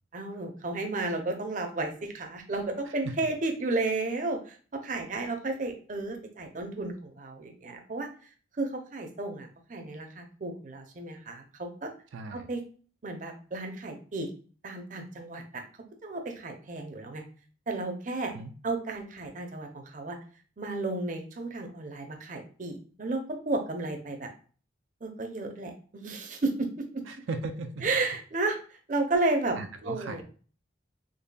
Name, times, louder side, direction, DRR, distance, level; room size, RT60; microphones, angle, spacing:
voice 1, 0.1-8.3 8.6-11.9 12.3-12.6 13.0-14.3 14.6-15.6 16.0-17.2 17.7-18.3 18.6-20.2 20.6-24.3 25.0-27.0 27.8-29.6 29.8-30.2, right 2 dB, 45° right, 5 dB, 0.6 m, -33 dB
voice 2, 12.1-12.5 18.3-18.5 27.1-27.9 29.6-30.2, right 3 dB, 90° right, 6 dB, 0.4 m, -37 dB
4.0 x 3.2 x 2.2 m, 0.40 s
head